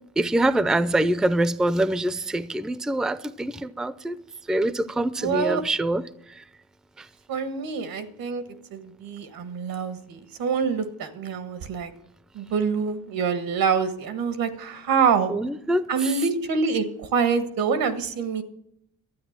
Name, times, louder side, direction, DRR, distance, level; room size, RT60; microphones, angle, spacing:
voice 1, 0.2-4.2 4.5-6.0 6.4-6.5 7.0-7.1 15.3-16.1, right 1 dB, ahead, 0.4 m, -24 dB
voice 2, 5.2-5.6 7.3-8.4 8.7-11.9 12.3-15.3 15.9-16.8 17.1-18.4, right 6 dB, 85° right, 1.6 m, -25 dB
12.5 x 9.3 x 7.4 m
cardioid pair, 130°, 34 cm